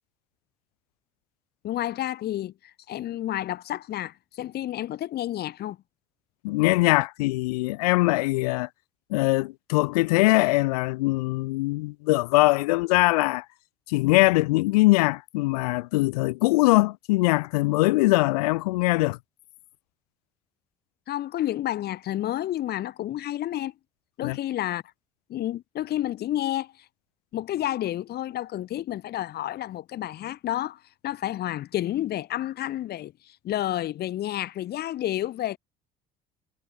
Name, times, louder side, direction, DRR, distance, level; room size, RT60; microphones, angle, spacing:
voice 1, 1.6-2.5 2.9-5.8 21.1-23.7 24.2-24.8 25.3-26.7 27.3-33.1 33.4-35.6, left 13 dB, 60° left, 2.6 m, -30 dB
voice 2, 6.4-8.7 9.1-13.4 13.9-19.2 24.2-24.4, left 22 dB, 90° left, 0.7 m, -22 dB
supercardioid pair, 75°, 19 cm